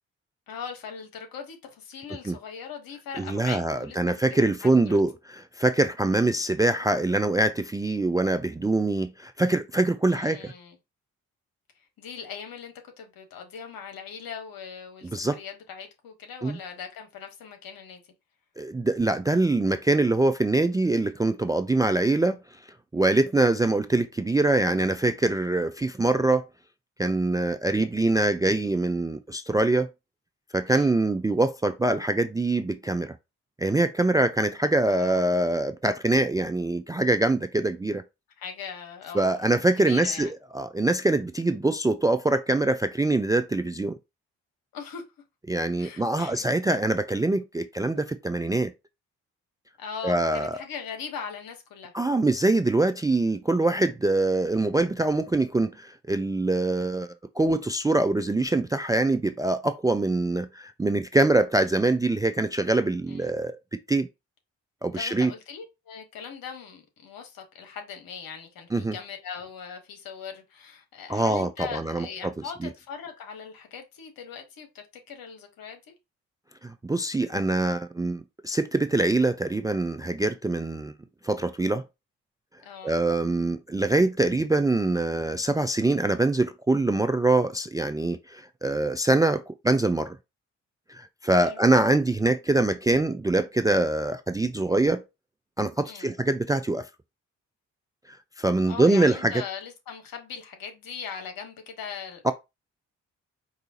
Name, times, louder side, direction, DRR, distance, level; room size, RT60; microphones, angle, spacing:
voice 1, 0.5-5.0 10.1-10.8 12.0-18.0 30.7-30.9 34.8-35.2 38.4-39.5 39.8-40.3 44.7-45.0 45.8-46.4 49.8-51.9 63.1-63.3 64.9-75.9 82.6-83.0 91.4-91.6 95.8-96.1 98.7-102.3, left 6 dB, 65° left, 1.2 m, -40 dB
voice 2, 3.2-10.5 15.1-15.4 16.4-16.6 18.6-22.4 22.9-26.4 27.0-29.9 30.5-33.1 33.6-38.0 39.1-44.0 45.5-48.7 50.0-50.6 51.9-57.1 57.4-63.6 63.9-64.1 64.8-65.3 68.7-69.0 71.1-72.3 72.6-72.7 76.6-80.9 81.2-81.8 82.8-90.2 90.9-95.0 95.6-96.9 98.1-99.4 102.2-102.3, right 2 dB, 10° right, 0.3 m, -24 dB
4.7 x 2.4 x 2.8 m
hypercardioid pair, 40°, 38 cm